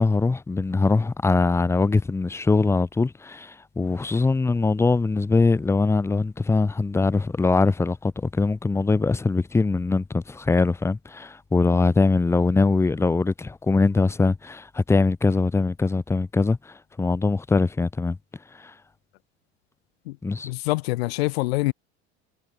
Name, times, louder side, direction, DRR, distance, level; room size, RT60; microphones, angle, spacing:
voice 1, 0.0-18.2 18.6-18.7 20.2-20.5, left 3 dB, 10° left, 0.6 m, -22 dB
voice 2, 20.4-21.7, left 20 dB, 85° left, 0.6 m, -25 dB
supercardioid pair, 105°, 30 cm